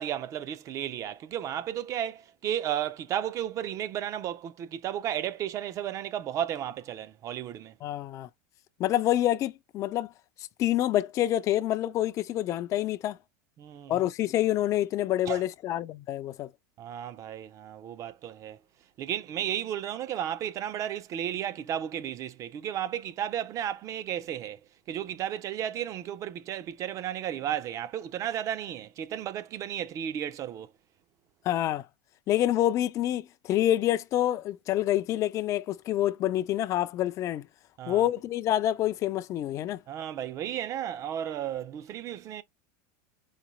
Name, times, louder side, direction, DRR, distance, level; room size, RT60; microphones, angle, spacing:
voice 1, 0.0-7.7 13.6-14.0 15.3-15.4 16.8-18.6 19.0-24.6 24.9-30.7 37.8-38.1 39.9-42.4, right 10 dB, 35° right, 0.5 m, -33 dB
voice 2, 7.8-8.3 8.8-10.1 10.4-13.2 13.9-16.5 31.5-31.8 32.3-37.5 37.9-39.8, left 13 dB, 35° left, 0.4 m, -27 dB
4.1 x 2.7 x 3.1 m
supercardioid pair, 135°, 10 cm